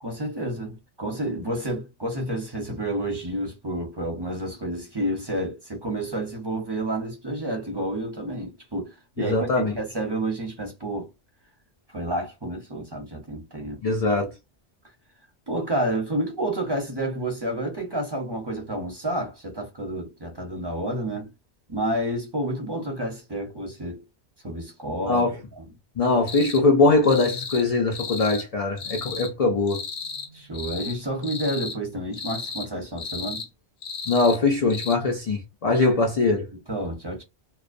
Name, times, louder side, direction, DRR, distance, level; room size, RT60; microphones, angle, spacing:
voice 1, 0.0-11.1 11.9-13.8 15.5-21.3 21.7-24.0 24.4-25.6 30.3-33.4 36.5-37.2, right 1 dB, 25° right, 0.7 m, -30 dB
voice 2, 9.2-9.7 13.8-14.3 25.0-25.4 26.0-29.8 34.1-36.5, left 3 dB, 70° left, 0.3 m, -21 dB
sound 1, 26.3-26.6 27.0-27.6 27.9-28.5 28.8-29.3 29.7-30.3 30.5-31.0 31.2-31.8 32.1-32.7 33.0-33.5 33.8-34.4 34.7-34.9, left 5 dB, 85° left, 1.0 m, -34 dB
2.3 x 2.2 x 2.5 m
omnidirectional pair, 1.2 m